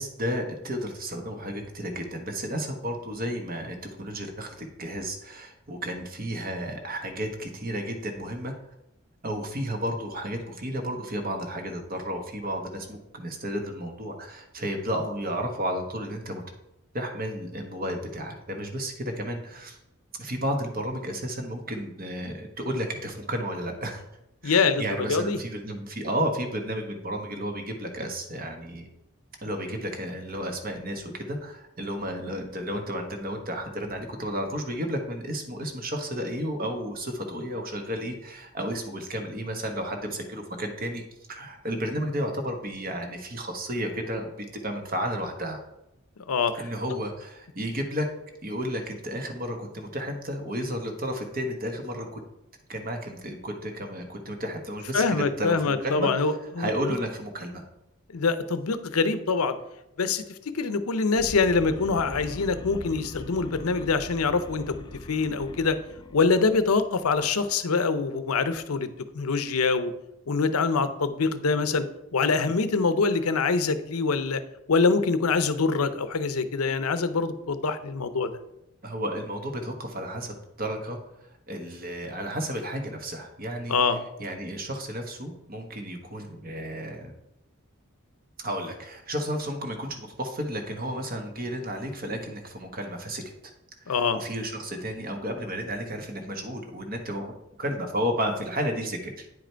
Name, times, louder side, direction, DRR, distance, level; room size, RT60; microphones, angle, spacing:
voice 1, 0.0-8.5 9.2-16.4 16.9-19.8 20.2-24.0 24.4-28.9 29.4-41.0 41.3-45.6 46.6-48.1 48.4-52.2 52.7-56.1 56.6-57.6 78.8-81.0 81.5-83.7 84.2-87.1 88.4-93.2 93.8-97.3 97.6-99.3, equal, 40° right, 4 dB, 1.2 m, -32 dB
voice 2, 24.4-25.4 46.3-46.6 54.9-56.7 58.1-59.6 60.0-64.8 65.1-65.8 66.1-68.9 69.1-69.9 70.3-71.9 72.1-74.4 74.7-78.3 83.7-84.0 93.9-94.2, left 4 dB, 85° left, 12 dB, 0.7 m, -24 dB
sound 1, 61.2-67.4, left 2 dB, 20° left, 0.4 m, -42 dB
9.5 x 4.9 x 4.5 m, 0.85 s
head